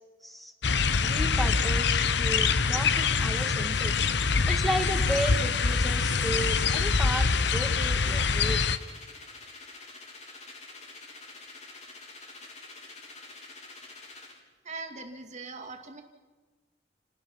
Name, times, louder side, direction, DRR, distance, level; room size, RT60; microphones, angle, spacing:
sound 1, 0.6-8.8, left 5 dB, 65° left, 0.9 m, -25 dB
voice 1, 1.0-4.0 4.5-8.6, right 1 dB, ahead, 4 dB, 2.2 m, -34 dB
sound 2, 4.6-14.4, left 3 dB, 40° left, 3.6 m, -47 dB
voice 2, 14.6-16.0, right 3 dB, 40° right, 5 dB, 2.3 m, -40 dB
29.0 x 19.5 x 6.0 m, 1.3 s
head